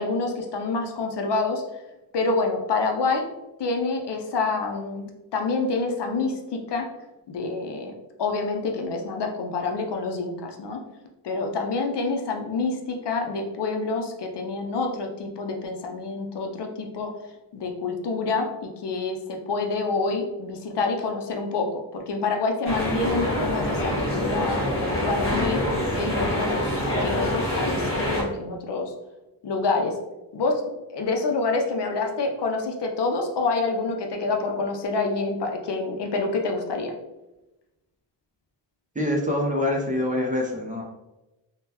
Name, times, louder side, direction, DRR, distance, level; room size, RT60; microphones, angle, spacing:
voice 1, 0.0-1.6 2.1-3.3 3.6-6.9 7.3-7.9 8.2-10.8 11.2-17.1 17.5-25.6 26.0-28.9 29.4-30.0 30.3-30.6 30.9-36.9, left 3 dB, 65° left, 3 dB, 0.6 m, -27 dB
sound 1, 22.6-28.2, left 1 dB, 30° left, 1.0 m, -25 dB
voice 2, 38.9-40.8, left 1 dB, 20° right, -2 dB, 0.5 m, -25 dB
3.6 x 2.1 x 2.8 m, 0.99 s
wide cardioid pair, 125°, 44 cm